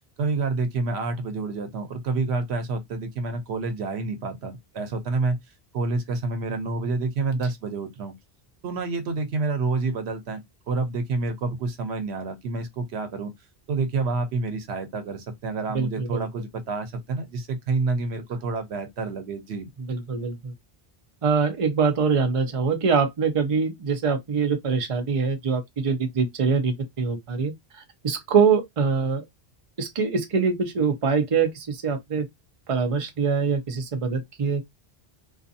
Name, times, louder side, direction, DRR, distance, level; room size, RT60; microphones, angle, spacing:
voice 1, 0.2-5.4 5.7-8.1 8.6-13.3 13.7-19.7, right 3 dB, 85° right, 1.0 m, -28 dB
voice 2, 15.7-16.2 19.9-20.5 21.2-29.2 29.8-32.3 32.7-34.6, right 5 dB, 40° right, 0.6 m, -24 dB
2.5 x 2.4 x 2.6 m
omnidirectional pair, 1.1 m